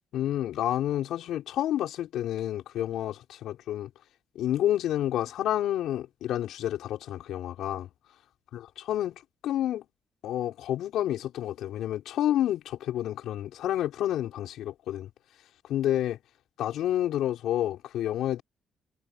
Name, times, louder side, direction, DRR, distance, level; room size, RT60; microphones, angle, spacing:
voice 1, 0.1-3.9 4.3-7.9 8.5-9.8 10.2-15.1 15.7-16.2 16.6-18.4, left 12 dB, 80° left, 6.2 m, -29 dB
cardioid pair, 90°, 0 cm